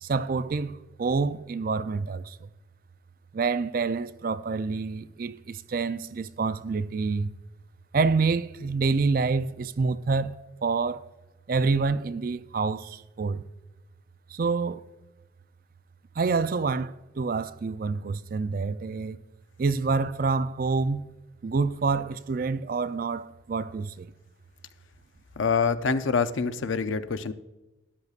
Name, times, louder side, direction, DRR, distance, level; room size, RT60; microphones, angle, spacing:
voice 1, 0.0-2.5 3.3-7.3 7.9-10.4 10.6-11.1 11.5-13.4 14.3-14.8 16.2-19.2 19.6-21.0 21.4-24.1, right 4 dB, 45° right, 0.4 m, -27 dB
voice 2, 25.4-27.3, left 5 dB, 80° left, 0.6 m, -26 dB
13.0 x 10.5 x 2.4 m
head